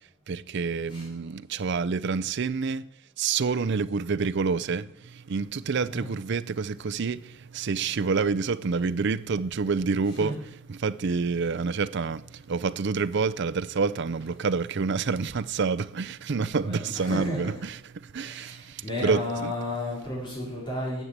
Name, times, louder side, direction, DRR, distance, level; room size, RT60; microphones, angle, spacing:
voice 1, 0.3-2.8 3.2-10.3 10.7-19.5, right 5 dB, 60° right, 0.5 m, -28 dB
voice 2, 16.6-17.6 18.2-21.0, left 1 dB, 25° left, 4.1 m, -33 dB
10.0 x 8.0 x 7.4 m
head